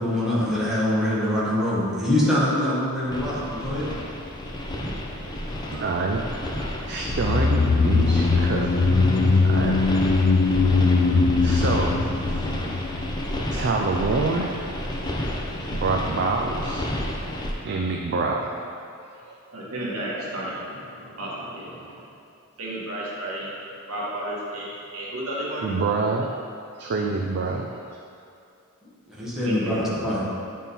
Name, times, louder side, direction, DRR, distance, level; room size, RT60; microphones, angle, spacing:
voice 1, 0.0-3.9 29.1-30.3, left 1 dB, ahead, -9 dB, 1.5 m, -24 dB
sound 1, 3.1-17.5, left 1 dB, 20° left, 0.7 m, -31 dB
voice 2, 4.6-5.4 19.5-22.1 22.6-23.5 23.9-25.7 29.5-29.8, right 1 dB, 80° right, -6 dB, 1.6 m, -33 dB
voice 3, 5.7-6.2 6.6-9.9 11.1-12.3 13.5-14.5 15.3-15.4 15.7-17.0 17.6-18.5 19.0-19.1 25.6-26.3 26.8-27.7, right 3 dB, 55° right, 0 dB, 0.4 m, -27 dB
sound 2, 7.0-13.5 13.7-13.8, left 4 dB, 40° left, 0.3 m, -21 dB
9.0 x 3.7 x 4.2 m, 2.5 s
head